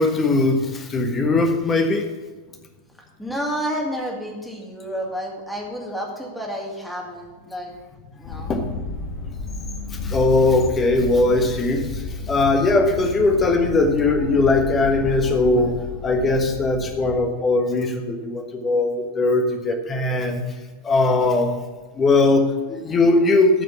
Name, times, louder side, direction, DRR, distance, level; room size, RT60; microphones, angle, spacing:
voice 1, 0.0-2.0 8.5-8.8 9.9-20.4 20.8-21.6 21.9-23.6, left 2 dB, 20° left, 4 dB, 1.4 m, -20 dB
voice 2, 3.2-7.7 8.2-8.5, equal, 5° left, -2 dB, 2.4 m, -30 dB
sound 1, 8.2-17.2, left 3 dB, 40° left, 1.6 m, -32 dB
13.5 x 5.1 x 7.2 m, 1.3 s
figure-of-eight pair, 90°, 0 cm